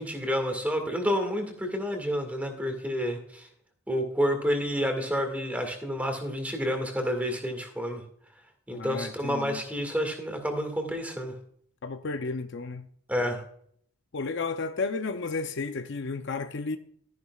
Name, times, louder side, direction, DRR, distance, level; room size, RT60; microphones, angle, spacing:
voice 1, 0.0-3.5 3.9-8.0 8.7-11.3 13.1-13.4, equal, 5° right, 1.9 m, -29 dB
voice 2, 8.7-9.6 11.8-12.8 14.1-16.8, left 4 dB, 55° left, 0.6 m, -32 dB
13.5 x 10.5 x 2.4 m
head